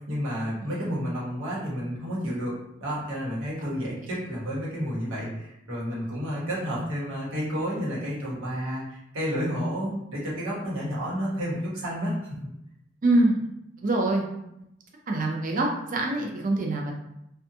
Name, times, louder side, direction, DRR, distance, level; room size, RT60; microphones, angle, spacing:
voice 1, 0.1-12.2, equal, 90° right, -6 dB, 1.1 m, -31 dB
voice 2, 13.0-13.4 13.8-14.2 15.1-17.0, right 2 dB, 40° right, 0 dB, 0.4 m, -24 dB
2.5 x 2.3 x 2.7 m, 0.80 s
head